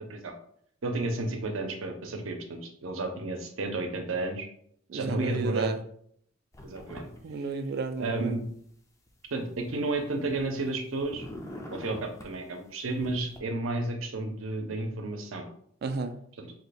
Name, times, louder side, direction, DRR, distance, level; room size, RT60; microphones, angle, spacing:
voice 1, 0.8-4.5 4.9-5.7 6.6-7.1 8.0-8.4 9.3-11.2 11.7-15.5 16.4-16.5, right 2 dB, 85° right, 4 dB, 0.6 m, -32 dB
voice 2, 4.9-5.8 7.2-8.3 15.8-16.2, right 4 dB, 50° right, 8 dB, 0.3 m, -32 dB
sound 1, 6.5-7.2 7.5-8.5 9.1-10.7 11.0-12.3 12.9-13.4, left 1 dB, 15° left, 0.4 m, -44 dB
2.8 x 2.2 x 4.1 m, 0.64 s
head